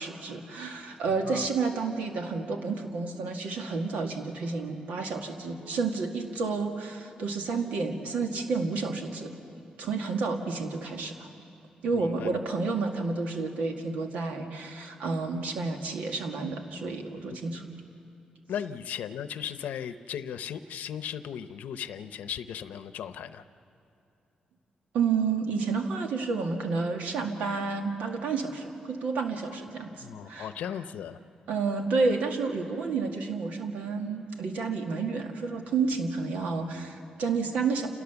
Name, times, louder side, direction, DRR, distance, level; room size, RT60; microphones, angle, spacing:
voice 1, 0.0-9.3 9.8-11.3 11.8-17.6 24.9-30.5 31.5-37.9, right 4 dB, 90° right, 3 dB, 2.0 m, -30 dB
voice 2, 11.9-12.4 18.5-23.4 30.0-31.2, left 9 dB, 90° left, 11 dB, 0.7 m, -37 dB
28.5 x 17.5 x 7.1 m, 2.6 s
cardioid pair, 95°, 3 cm